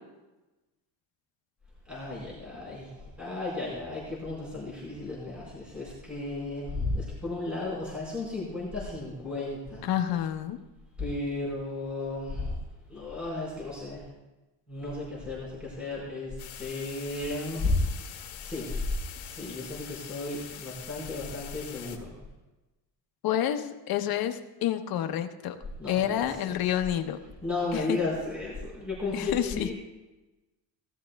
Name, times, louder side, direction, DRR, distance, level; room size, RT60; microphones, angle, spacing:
voice 1, 1.8-9.9 11.0-12.6 12.9-14.1 14.7-18.8 19.1-22.2 25.8-26.7 27.4-29.7, left 2 dB, ahead, -6 dB, 4.8 m, -34 dB
voice 2, 9.8-10.6 23.2-25.6 25.9-27.2 27.7-28.0 29.1-29.7, left 11 dB, 55° left, 6 dB, 1.1 m, -29 dB
sound 1, 16.4-22.0, left 11 dB, 75° left, 2.0 m, -44 dB
18.0 x 13.0 x 2.3 m, 1.1 s
cardioid pair, 145°, 42 cm